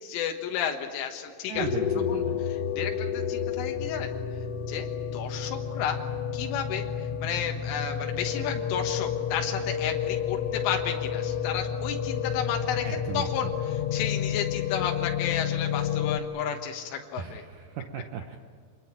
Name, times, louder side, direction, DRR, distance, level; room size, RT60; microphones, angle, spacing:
voice 1, 0.0-1.7 2.1-2.2 2.5-4.1 4.7-6.0 6.3-17.4, left 8 dB, 90° left, 3 dB, 3.9 m, -32 dB
voice 2, 1.5-2.4 12.8-13.5 17.2-18.4, right 7 dB, 80° right, 5 dB, 1.9 m, -36 dB
sound 1, 1.6-16.2, left 8 dB, 70° left, 3.4 m, -30 dB
26.0 x 21.0 x 8.9 m, 2.1 s
omnidirectional pair, 5.4 m